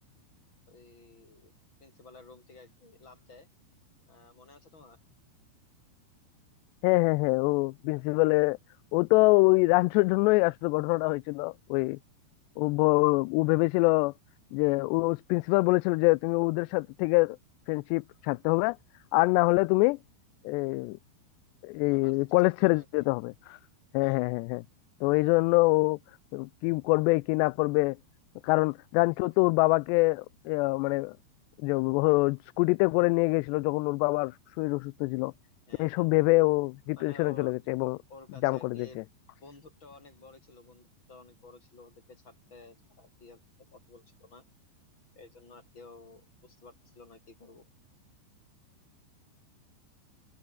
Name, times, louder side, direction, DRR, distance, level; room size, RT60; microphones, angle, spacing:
voice 1, 0.7-1.5 1.8-3.5 4.1-5.0 21.9-23.1 24.0-24.2 35.7-36.1 37.0-37.5 38.1-39.0 39.4-43.4 43.7-44.4 45.2-47.7, left 3 dB, 25° left, 6.5 m, -53 dB
voice 2, 6.8-8.6 8.9-12.0 12.6-14.1 14.5-17.4 17.7-18.8 19.1-20.0 20.4-21.0 21.6-23.6 23.9-24.6 25.0-26.0 26.3-28.0 28.4-31.2 31.6-35.3 35.8-38.0 38.4-38.9, left 25 dB, 85° left, 2.5 m, -25 dB
omnidirectional pair, 5.2 m